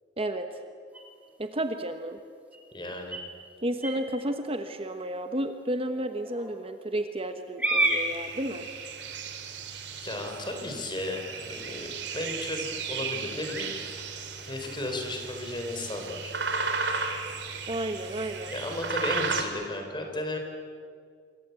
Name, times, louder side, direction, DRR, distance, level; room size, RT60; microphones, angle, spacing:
voice 1, 0.2-0.6 1.4-2.2 3.6-8.7 17.7-18.5, right 1 dB, 30° right, 7 dB, 1.2 m, -32 dB
sound 1, 0.9-18.4, right 1 dB, 10° right, 4.0 m, -38 dB
voice 2, 2.7-3.2 10.0-13.7 14.4-16.3 18.5-20.4, left 1 dB, 25° left, 3 dB, 4.3 m, -34 dB
sound 2, 7.8-19.4, right 4 dB, 75° right, 3.0 m, -35 dB
27.5 x 23.5 x 8.3 m, 2.1 s
head